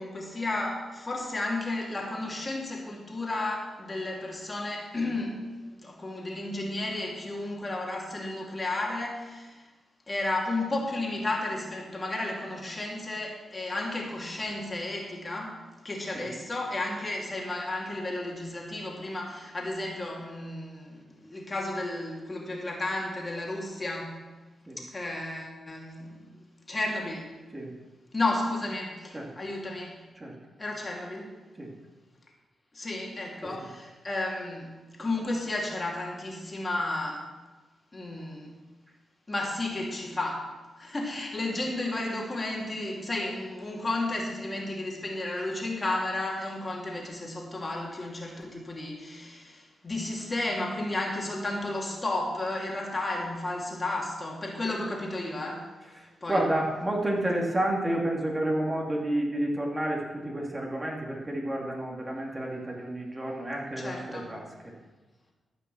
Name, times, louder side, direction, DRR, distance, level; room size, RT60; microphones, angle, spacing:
voice 1, 0.0-9.6 10.1-15.6 15.8-24.2 24.8-26.3 26.7-27.3 28.1-30.0 30.6-31.3 32.7-34.7 35.0-37.2 37.9-38.5 39.3-40.5 40.8-55.7 56.2-56.4 63.8-64.4, left 2 dB, 30° left, -1 dB, 2.5 m, -33 dB
voice 2, 56.0-64.7, right 1 dB, 20° right, -2 dB, 2.7 m, -30 dB
14.5 x 5.8 x 6.2 m, 1.3 s
cardioid pair, 70°, 0 cm